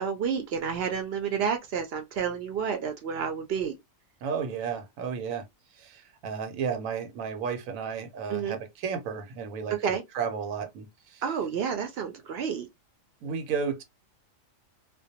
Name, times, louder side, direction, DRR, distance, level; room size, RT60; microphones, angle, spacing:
voice 1, 0.0-3.8 8.3-8.6 9.7-10.0 11.2-12.7, right 7 dB, 60° right, 0.7 m, -30 dB
voice 2, 4.2-5.4 5.8-11.2 13.2-13.8, right 6 dB, 90° right, 1.1 m, -33 dB
2.2 x 2.2 x 2.7 m
omnidirectional pair, 1.4 m